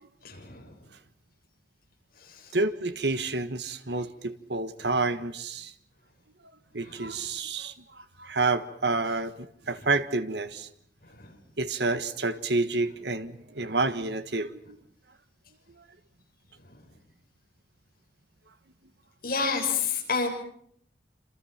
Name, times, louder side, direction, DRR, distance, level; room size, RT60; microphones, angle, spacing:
voice 1, 0.2-0.7 2.2-2.5 4.8-4.9 6.8-7.1 9.8-9.9 11.0-11.3 19.2-20.3, left 5 dB, 55° left, 6.7 m, -30 dB
voice 2, 2.5-5.7 6.7-9.3 9.7-10.7 11.6-14.8, right 3 dB, 70° right, 1.6 m, -29 dB
27.5 x 27.5 x 5.9 m
head